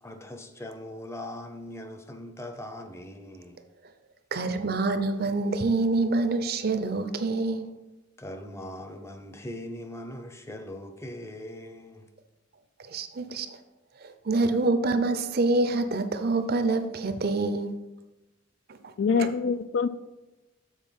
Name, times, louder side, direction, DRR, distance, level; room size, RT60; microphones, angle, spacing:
voice 1, 0.0-3.6 8.2-12.1, left 1 dB, 15° left, 6 dB, 0.7 m, -40 dB
voice 2, 4.3-7.7 12.9-13.5 14.3-17.7 19.2-19.3, right 3 dB, 50° right, 9 dB, 0.6 m, -26 dB
voice 3, 19.0-19.9, left 5 dB, 85° left, 13 dB, 0.4 m, -24 dB
7.3 x 4.3 x 5.7 m, 1.1 s
head